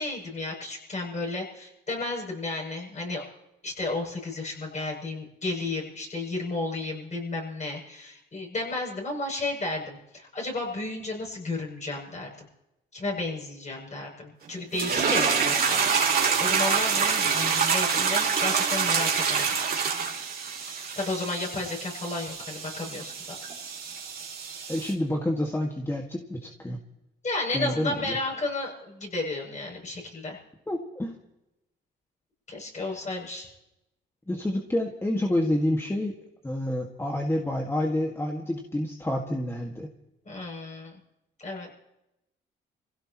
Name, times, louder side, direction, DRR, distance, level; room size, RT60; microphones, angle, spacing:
voice 1, 0.0-3.2 3.6-12.5 12.9-19.5 20.7-23.1 27.2-30.4 32.5-33.5 40.2-40.9 41.4-41.7, left 2 dB, 35° left, -1 dB, 7.3 m, -33 dB
sound 1, 14.7-24.9, right 6 dB, 50° right, 3.2 m, -26 dB
voice 2, 24.7-26.8 27.5-28.2 30.7-31.2 34.3-36.2 36.4-39.9, left 1 dB, 10° left, 1 dB, 1.8 m, -28 dB
27.5 x 16.5 x 3.0 m, 0.91 s
cardioid pair, 90°, 20 cm